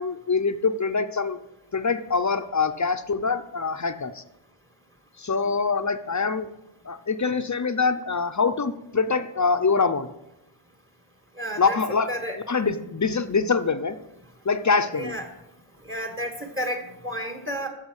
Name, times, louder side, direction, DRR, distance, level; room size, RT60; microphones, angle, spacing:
voice 1, 0.0-1.4 1.7-4.2 5.2-6.5 6.8-10.1 11.6-12.1 12.5-13.9 14.4-15.2, left 4 dB, 35° left, 9 dB, 0.7 m, -24 dB
voice 2, 11.4-11.8 12.1-12.4 14.9-15.2 15.8-17.7, equal, 25° right, 4 dB, 1.7 m, -31 dB
9.5 x 6.8 x 8.1 m, 0.92 s
wide cardioid pair, 80°, 49 cm